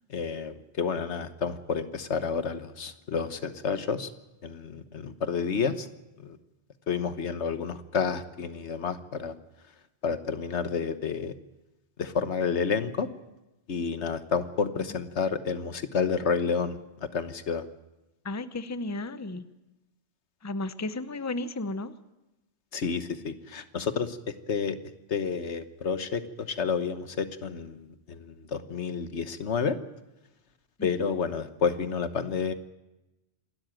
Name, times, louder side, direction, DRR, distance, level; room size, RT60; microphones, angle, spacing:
voice 1, 0.1-4.1 4.4-5.9 6.2-6.4 6.9-9.3 10.0-11.3 12.0-13.1 13.7-17.7 22.7-24.8 25.1-29.8 30.8-32.5, left 6 dB, 85° left, 11 dB, 1.5 m, -30 dB
voice 2, 18.2-19.4 20.4-21.9 30.8-31.1, left 2 dB, 15° left, 12 dB, 0.7 m, -34 dB
27.5 x 13.0 x 9.0 m, 0.99 s
omnidirectional pair, 1.1 m